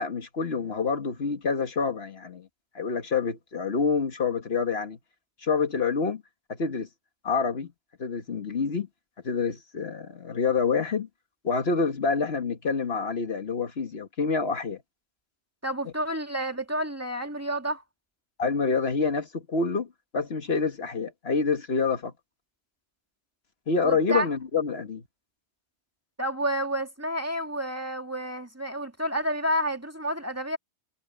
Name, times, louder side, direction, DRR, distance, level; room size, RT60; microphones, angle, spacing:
voice 1, 0.0-2.5 2.8-5.0 5.4-6.2 6.5-6.9 7.2-7.7 8.0-8.9 9.2-11.1 11.4-14.8 18.4-22.1 23.7-25.0, left 4 dB, 65° left, 1.8 m, -27 dB
voice 2, 15.6-17.8 23.8-24.3 26.2-30.6, right 1 dB, 15° right, 2.1 m, -30 dB
omnidirectional pair, 1.2 m